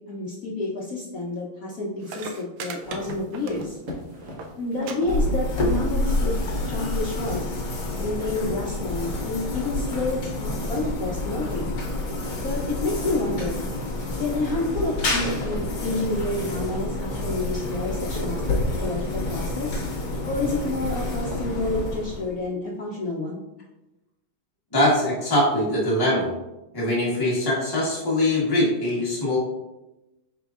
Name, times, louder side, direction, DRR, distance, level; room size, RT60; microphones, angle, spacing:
voice 1, 0.1-3.8 4.6-6.4 6.7-7.6 8.0-11.8 12.4-13.6 14.2-19.8 20.2-23.4, left 2 dB, 85° left, -5 dB, 0.7 m, -29 dB
sound 1, 1.7-1.8 2.0-4.0 4.2-4.5 4.8-5.0 5.2-5.7 6.6-6.7, right 5 dB, 80° right, 1.4 m, -37 dB
sound 2, 2.8-22.0, equal, 50° right, 1.1 m, -41 dB
sound 3, 5.1-22.5, left 2 dB, 50° left, 1.0 m, -28 dB
voice 2, 24.7-26.3 26.7-29.4, left 1 dB, 30° left, -6 dB, 0.4 m, -22 dB
5.0 x 4.4 x 2.3 m, 0.98 s
omnidirectional pair, 2.4 m